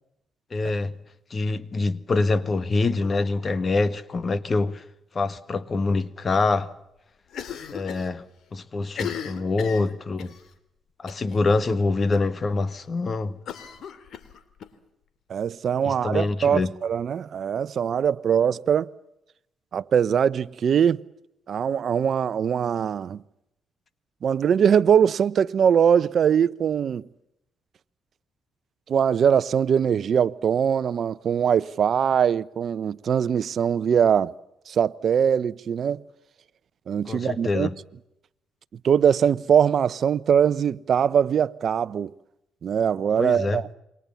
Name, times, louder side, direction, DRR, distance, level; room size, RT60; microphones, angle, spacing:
voice 1, 0.5-0.9 1.3-4.8 5.1-6.7 7.7-8.2 8.5-10.3 11.0-13.4 15.8-16.7 37.1-37.7 43.2-43.6, left 3 dB, 35° left, 1.5 m, -25 dB
Cough, 7.3-8.1 8.4-8.5 8.9-10.4 11.1-11.4 11.7-11.8 12.1-12.2 13.5-14.7, left 8 dB, 70° left, 2.6 m, -36 dB
voice 2, 15.3-18.9 19.7-21.0 21.5-23.2 24.2-27.0 28.9-34.3 34.7-36.0 36.9-37.7 38.8-42.1 42.6-43.7, right 8 dB, 55° right, 0.9 m, -22 dB
28.0 x 24.0 x 7.1 m
cardioid pair, 90°, 0 cm